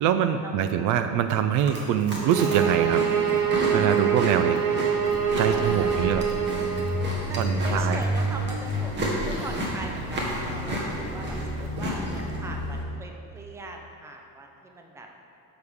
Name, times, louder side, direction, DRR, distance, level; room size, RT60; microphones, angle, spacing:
voice 1, 0.0-3.0 3.7-4.6 5.4-6.2 7.4-8.0, right 9 dB, 60° right, 9 dB, 0.5 m, -24 dB
Chewing mastication, 1.5-12.4, equal, 30° right, 1.5 m, -33 dB
sound 1, 2.2-7.1, right 8 dB, 75° right, 1.0 m, -25 dB
sound 2, 5.1-12.8, equal, 15° left, 1.4 m, -31 dB
voice 2, 5.4-6.0 7.2-15.1, right 2 dB, 10° right, 2 dB, 0.5 m, -41 dB
11.5 x 6.6 x 3.6 m, 2.6 s
cardioid pair, 160°, 34 cm